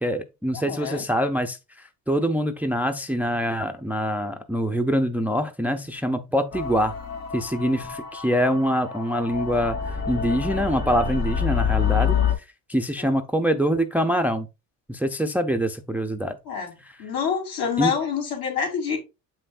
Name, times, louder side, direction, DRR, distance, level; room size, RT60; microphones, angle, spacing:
voice 1, 0.0-6.9 7.3-9.8 10.1-12.2 12.7-14.5 14.9-16.4 16.8-16.9 17.8-17.9, equal, 5° right, 0.5 m, -24 dB
voice 2, 0.5-1.0 13.0-13.2 16.5-16.7 17.0-19.0, left 7 dB, 70° left, 3.2 m, -27 dB
sound 1, 6.5-12.3, left 7 dB, 45° left, 2.7 m, -27 dB
7.6 x 5.7 x 2.5 m
cardioid pair, 130°, 37 cm